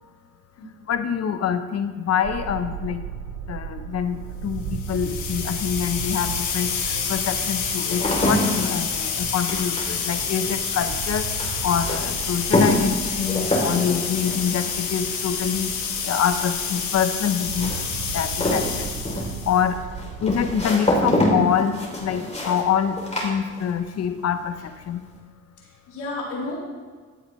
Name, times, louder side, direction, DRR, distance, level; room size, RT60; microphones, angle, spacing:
voice 1, 0.8-3.1 3.5-11.3 11.6-15.7 16.0-17.8 18.1-18.9 19.4-19.8 20.2-25.1, left 8 dB, 55° left, 9 dB, 0.9 m, -25 dB
sound 1, 2.2-20.7, right 6 dB, 60° right, 0.9 m, -36 dB
sound 2, 4.7-19.6, left 6 dB, 70° left, 1.6 m, -28 dB
sound 3, 6.8-24.0 24.3-24.9, left 1 dB, 20° left, 3.2 m, -27 dB
voice 2, 25.6-26.6, left 2 dB, 85° left, -5 dB, 3.5 m, -32 dB
14.5 x 8.0 x 3.2 m, 1.5 s
cardioid pair, 90°, 30 cm